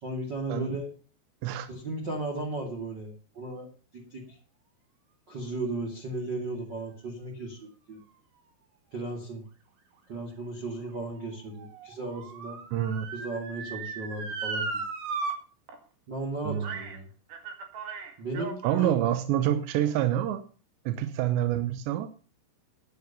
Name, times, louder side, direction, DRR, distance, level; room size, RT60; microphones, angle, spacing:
voice 1, 0.0-0.9 1.7-3.7 3.9-4.4 5.3-8.0 8.9-9.4 10.1-12.6 13.1-14.8 16.1-17.1 18.2-19.0, right 2 dB, 30° right, 2.6 m, -35 dB
Motor vehicle (road) / Siren, 10.1-15.3 15.7-15.8 16.6-17.0 17.3-19.0 19.7-19.8, right 4 dB, 60° right, 3.8 m, -37 dB
voice 2, 12.7-13.1 16.4-16.7 18.6-20.4 20.9-22.1, right 12 dB, 85° right, 3.1 m, -27 dB
10.5 x 10.0 x 6.8 m
omnidirectional pair, 5.0 m